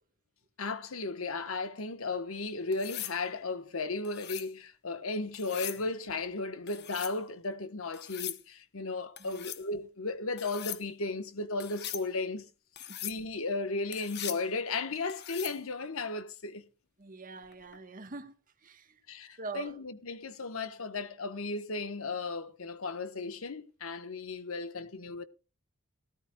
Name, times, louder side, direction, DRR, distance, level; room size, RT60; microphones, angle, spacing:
voice 1, 0.6-12.4 13.0-16.6 19.1-25.2, left 3 dB, 75° left, 1.2 m, -35 dB
sound 1, 2.7-3.2 4.0-4.5 5.3-5.8 6.7-7.2 7.9-8.4 9.2-9.6 10.4-10.8 11.6-12.1 12.8-13.2 13.9-14.4 15.1-15.6 17.5-17.8, left 12 dB, 50° left, 1.0 m, -40 dB
voice 2, 17.0-18.3 18.6-19.0 19.4-19.8, right 4 dB, 40° right, 1.3 m, -43 dB
18.5 x 13.5 x 2.3 m
head